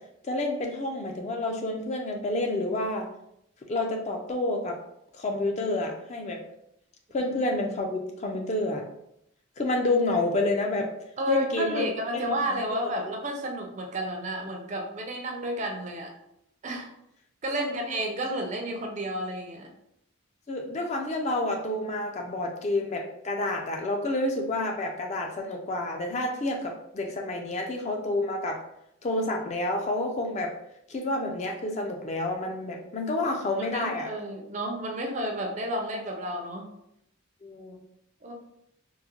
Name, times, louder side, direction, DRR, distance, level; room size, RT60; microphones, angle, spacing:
voice 1, 0.2-3.1 3.7-4.8 5.1-6.4 7.1-8.8 9.6-10.9 11.3-11.9 12.1-12.6 17.6-17.9 20.5-28.6 29.0-30.5 30.9-34.1 37.4-37.8, left 2 dB, 30° left, 2 dB, 0.3 m, -29 dB
voice 2, 11.2-16.1 16.6-16.9 17.4-19.7 33.6-36.7 38.2-38.3, equal, 35° right, 2 dB, 0.4 m, -31 dB
3.7 x 2.0 x 2.8 m, 0.77 s
head